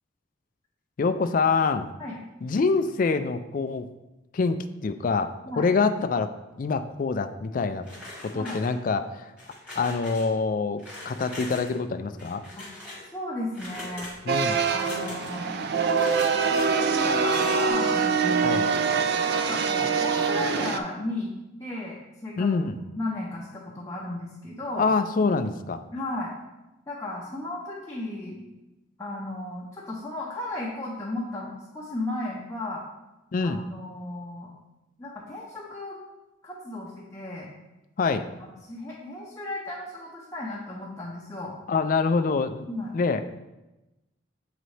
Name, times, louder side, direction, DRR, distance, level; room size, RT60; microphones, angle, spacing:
voice 1, 1.0-1.9 2.4-3.9 4.3-6.3 6.6-7.8 8.2-9.3 9.8-12.4 14.2-14.6 18.4-18.7 22.4-22.8 24.8-25.8 33.3-33.6 38.0-38.3 41.7-42.7 42.9-43.4, left 4 dB, 40° left, 9 dB, 0.3 m, -25 dB
sound 1, 7.8-9.0 9.4-10.3 10.8-11.7 12.2-13.1 13.5-14.2 14.7-15.4 15.9-16.7 17.1-17.7, left 1 dB, 5° right, 1.5 m, -41 dB
voice 2, 13.1-14.1 14.7-15.6 16.3-18.6 19.3-21.3 21.6-22.5 22.9-24.9 25.9-26.3 26.9-28.4 29.0-32.8 33.4-34.5 35.0-36.0 36.4-37.5 38.4-41.5 42.7-42.9, left 2 dB, 15° left, -5 dB, 0.7 m, -35 dB
sound 2, 14.3-20.8, right 5 dB, 55° right, 0.4 m, -24 dB
7.5 x 4.0 x 3.2 m, 1.0 s
head